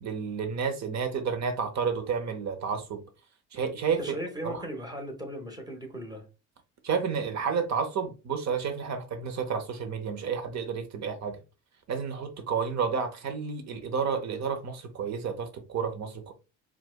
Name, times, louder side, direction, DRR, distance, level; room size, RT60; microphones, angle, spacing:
voice 1, 0.0-3.0 3.5-4.0 4.4-4.6 6.8-11.4 11.9-16.3, right 6 dB, 40° right, 0.7 m, -31 dB
voice 2, 4.0-6.3, right 1 dB, 10° right, 1.2 m, -37 dB
4.3 x 2.3 x 2.2 m
hypercardioid pair, 65°, 41 cm